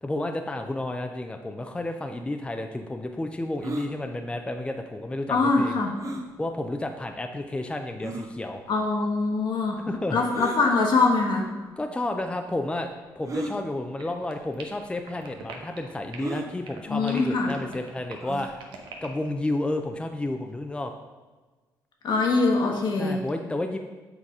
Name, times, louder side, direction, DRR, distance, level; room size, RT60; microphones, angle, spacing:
voice 1, 0.0-5.8 6.4-8.6 9.9-10.2 11.8-12.9 13.2-18.5 19.0-20.9 23.0-23.8, left 2 dB, 15° left, 5 dB, 0.5 m, -31 dB
sound 1, 3.6-3.9 6.0-6.3 7.1-7.2 8.0-8.3 10.3-10.6 11.7-11.8 13.2-13.6 14.5-14.6 14.9-15.0 16.2-16.5 18.2-18.6, right 2 dB, 40° right, 0.9 m, -34 dB
voice 2, 5.3-5.9 8.7-9.8 10.1-11.4 16.9-17.5 22.0-23.2, left 3 dB, 65° left, 1 dB, 1.3 m, -23 dB
sound 2, 14.0-16.4 16.6-19.3, right 5 dB, 80° right, 1.0 m, -43 dB
7.4 x 3.9 x 4.9 m, 1.3 s
cardioid pair, 70°, 8 cm